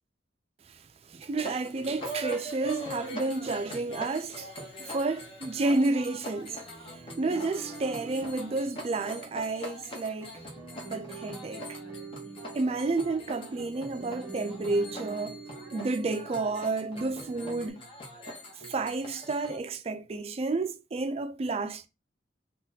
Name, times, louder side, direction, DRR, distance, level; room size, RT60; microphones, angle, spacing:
voice 1, 0.7-6.6 6.9-10.3 10.9-11.8 12.5-15.4 15.7-17.8 18.7-21.9, right 3 dB, 35° right, 0.3 m, -31 dB
sound 1, 1.3-19.6, equal, 30° left, 0.8 m, -42 dB
sound 2, 6.1-17.7, right 4 dB, 15° right, 0.9 m, -46 dB
3.6 x 2.3 x 2.7 m
head